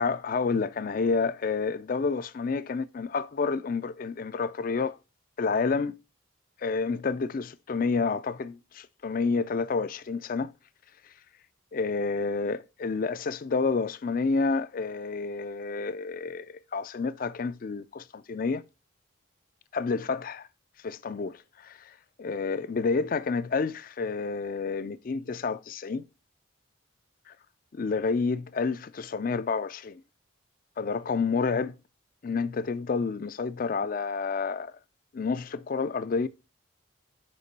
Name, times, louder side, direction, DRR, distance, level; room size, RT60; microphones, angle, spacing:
voice 1, 0.0-5.0 5.4-5.9 6.6-10.5 11.7-18.6 19.7-20.4 20.8-26.1 27.3-27.4 27.7-30.0 30.8-31.8 32.2-34.7 35.1-36.3, left 4 dB, 45° left, 0.4 m, -29 dB
6.7 x 5.1 x 5.2 m
head